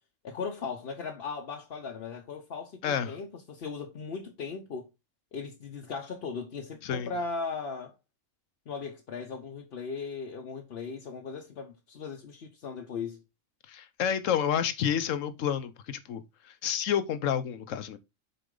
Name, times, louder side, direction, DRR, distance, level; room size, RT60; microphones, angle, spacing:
voice 1, 0.2-4.9 5.3-7.9 8.7-13.2, left 5 dB, 55° left, 1.0 m, -38 dB
voice 2, 2.8-3.2 6.8-7.1 13.7-18.0, left 8 dB, 75° left, 1.1 m, -30 dB
6.8 x 4.2 x 3.8 m
omnidirectional pair, 1.4 m